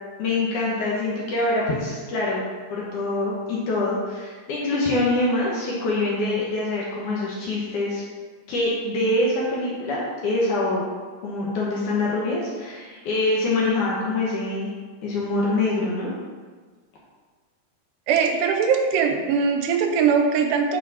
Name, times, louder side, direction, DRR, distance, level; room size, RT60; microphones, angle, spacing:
voice 1, 0.2-2.4 2.7-8.0 8.5-10.9 11.2-14.7 15.0-16.1, left 2 dB, 65° left, -5 dB, 2.2 m, -24 dB
voice 2, 18.1-20.8, right 6 dB, 90° right, 4 dB, 2.9 m, -21 dB
9.6 x 5.0 x 4.1 m, 1.5 s
omnidirectional pair, 4.7 m